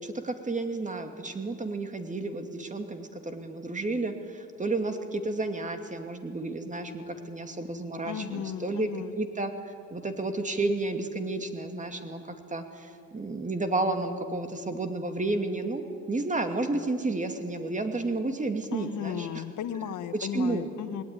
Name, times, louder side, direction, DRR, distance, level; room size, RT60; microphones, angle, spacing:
voice 1, 0.0-19.3 20.2-20.7, right 2 dB, 25° right, 6 dB, 2.5 m, -31 dB
voice 2, 8.0-9.1 18.7-21.0, left 9 dB, 80° left, 10 dB, 1.4 m, -35 dB
21.0 x 18.5 x 10.0 m, 2.2 s
cardioid pair, 90°, 30 cm